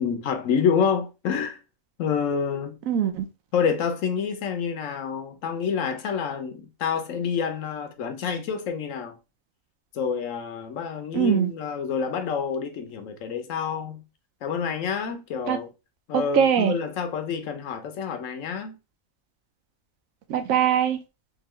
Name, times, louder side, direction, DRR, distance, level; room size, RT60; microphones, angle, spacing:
voice 1, 0.0-1.6 2.0-2.8 3.5-9.2 9.9-14.0 14.4-15.7 16.1-18.8, left 6 dB, 70° left, 1.1 m, -28 dB
voice 2, 2.9-3.3 11.1-11.5 15.5-15.6 16.1-16.7 20.3-21.0, right 8 dB, 75° right, 1.0 m, -22 dB
3.7 x 2.7 x 3.0 m
omnidirectional pair, 1.4 m